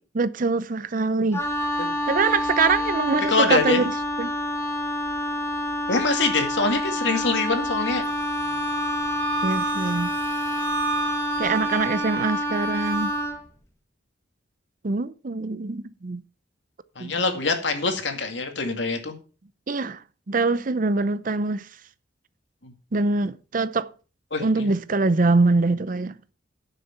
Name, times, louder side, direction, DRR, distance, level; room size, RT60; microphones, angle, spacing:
voice 1, 0.1-1.4 2.1-3.9 4.2-4.3 9.4-10.1 11.4-13.1 14.8-16.2 17.0-17.2 19.7-20.0 20.3-21.7 22.9-23.9 24.4-26.1, right 3 dB, 45° right, 0.6 m, -23 dB
Wind instrument woodwind instrument, 1.3-13.4, left 1 dB, 15° left, 1.8 m, -28 dB
voice 2, 3.3-3.8 5.9-8.0 17.0-19.1 22.6-22.7 24.3-24.7, left 3 dB, 70° left, 2.2 m, -24 dB
Wind instrument woodwind instrument 2, 8.0-13.3, right 2 dB, 85° right, 2.4 m, -32 dB
11.0 x 6.6 x 5.8 m
head